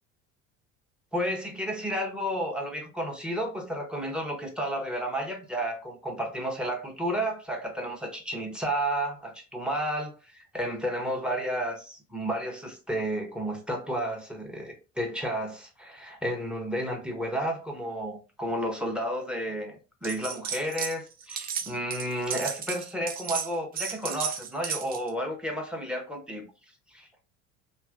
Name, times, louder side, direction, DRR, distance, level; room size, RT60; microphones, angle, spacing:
voice 1, 1.1-26.5 26.9-27.1, equal, ahead, 0.7 m, -32 dB
sound 1, 20.0-21.0 21.2-25.1, right 7 dB, 25° right, 0.3 m, -34 dB
2.7 x 2.4 x 2.3 m
hypercardioid pair, 65°, 38 cm